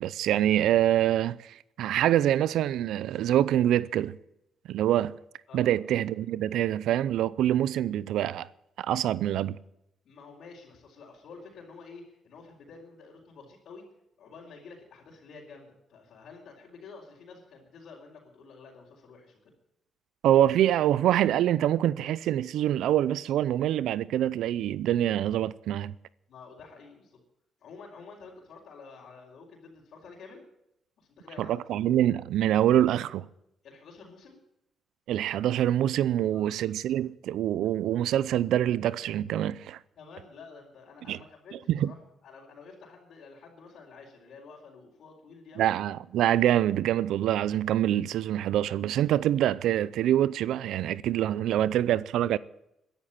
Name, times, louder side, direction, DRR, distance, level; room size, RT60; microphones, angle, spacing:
voice 1, 0.0-4.2 4.7-5.2 5.5-8.5 8.8-9.6 20.2-25.9 31.4-33.3 35.1-39.8 41.1-41.2 41.7-41.9 45.6-52.4, right 12 dB, 80° right, 0.5 m, -25 dB
voice 2, 10.0-13.9 14.2-19.4 26.3-27.2 27.6-30.4 31.0-31.8 33.6-34.4 36.3-36.7 40.0-42.0 42.2-45.7, left 4 dB, 65° left, 4.2 m, -49 dB
13.0 x 11.0 x 9.0 m
cardioid pair, 90°, 0 cm